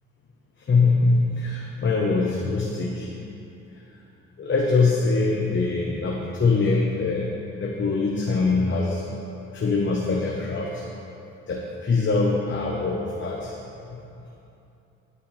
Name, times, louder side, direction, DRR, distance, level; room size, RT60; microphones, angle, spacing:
voice 1, 0.7-3.1 4.4-7.3 7.6-9.0 9.5-10.8 11.5-13.5 13.9-14.0, left 3 dB, 40° left, -2 dB, 1.1 m, -23 dB
14.5 x 8.0 x 3.4 m, 2.9 s
cardioid pair, 90°, 30 cm